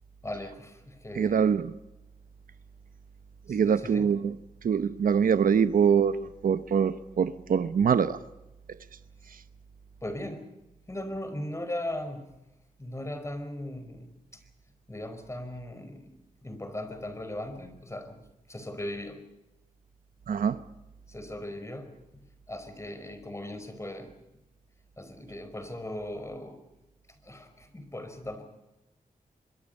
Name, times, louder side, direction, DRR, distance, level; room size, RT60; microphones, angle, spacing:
voice 1, 0.2-1.5 3.5-4.1 9.2-9.3 10.0-10.5 10.9-12.4 12.8-14.4 14.9-19.2 21.1-24.1 25.0-26.6 27.2-28.4, left 1 dB, 20° left, 4.9 m, -38 dB
voice 2, 1.1-1.7 3.5-4.4 4.6-8.2 20.3-20.6, right 7 dB, 85° right, 0.9 m, -24 dB
25.5 x 22.5 x 5.5 m
wide cardioid pair, 85°, 14 cm